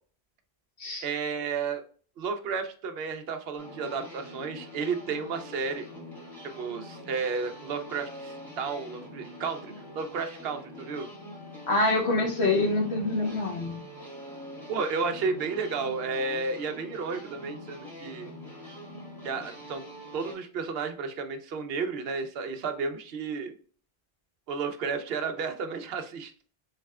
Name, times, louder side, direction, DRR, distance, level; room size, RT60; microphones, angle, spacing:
voice 1, 1.0-1.8 2.2-5.9 6.6-11.1 14.7-18.3 19.2-19.9 20.1-23.5 24.5-26.3, right 5 dB, 75° right, 7 dB, 0.8 m, -32 dB
sound 1, 3.6-20.3, left 1 dB, ahead, 1.5 m, -44 dB
voice 2, 11.7-13.8, left 2 dB, 90° left, 0 dB, 1.5 m, -26 dB
4.1 x 3.2 x 2.3 m, 0.43 s
omnidirectional pair, 1.0 m